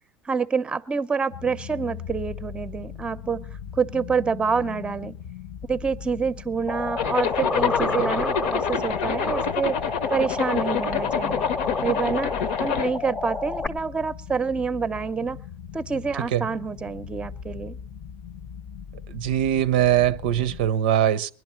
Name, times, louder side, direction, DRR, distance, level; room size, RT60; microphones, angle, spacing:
voice 1, 0.2-5.2 5.7-9.8 10.1-11.4 11.8-12.3 12.6-15.4 15.7-17.8, right 5 dB, 20° right, 0.6 m, -27 dB
sound 1, 1.3-20.7, left 8 dB, 55° left, 0.7 m, -39 dB
sound 2, 6.7-13.7, left 3 dB, 15° left, 0.7 m, -29 dB
Zipper (clothing), 7.0-12.9, left 7 dB, 85° left, 0.9 m, -27 dB
voice 2, 19.1-21.3, right 11 dB, 90° right, 0.6 m, -22 dB
20.5 x 11.0 x 4.4 m
supercardioid pair, 110°, 5 cm